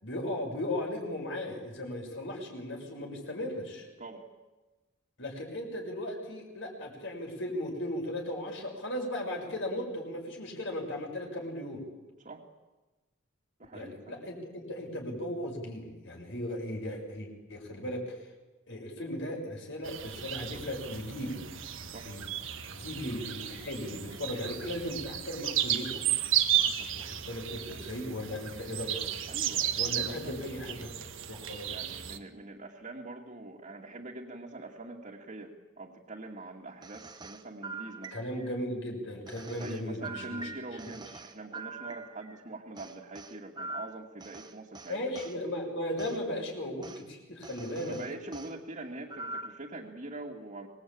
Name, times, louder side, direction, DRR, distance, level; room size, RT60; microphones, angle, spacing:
voice 1, 0.0-3.9 5.2-11.8 13.7-18.1 18.7-21.4 22.1-22.2 22.7-26.0 27.0-29.2 29.8-30.9 31.3-31.7 38.1-40.5 44.9-48.0, left 1 dB, 65° left, 1 dB, 6.6 m, -37 dB
voice 2, 13.6-14.2 21.9-22.1 26.6-26.9 29.3-30.7 31.7-38.2 39.6-45.0 47.8-50.7, right 2 dB, 40° right, -4 dB, 2.4 m, -44 dB
sound 1, 19.8-32.2, right 11 dB, 75° right, 1.6 m, -33 dB
sound 2, 36.8-38.6 39.3-42.4 42.8-45.4 46.0-46.2 46.8-47.0 47.4-48.5 49.1-49.7, right 3 dB, 20° right, 1.1 m, -44 dB
25.5 x 21.0 x 8.8 m, 1.2 s
head